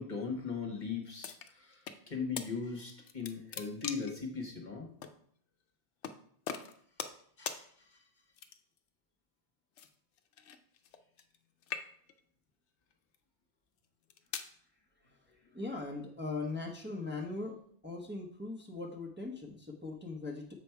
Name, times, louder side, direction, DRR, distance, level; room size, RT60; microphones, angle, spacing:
voice 1, 0.0-1.8 2.1-4.9 7.4-8.0, left 5 dB, 45° left, 2 dB, 1.3 m, -39 dB
sound 1, 1.2-2.0 2.4-2.5 2.9-4.2 5.0-5.1 6.0-6.2 6.5-7.2 7.5-7.6 8.3-8.8 9.8-11.4 11.6-12.2 12.9-13.2 13.8-14.5, left 7 dB, 80° left, 0.9 m, -41 dB
voice 2, 15.5-17.6 17.8-20.5, left 3 dB, 10° right, -1 dB, 1.0 m, -40 dB
7.0 x 5.1 x 4.6 m, 0.62 s
omnidirectional pair, 1.2 m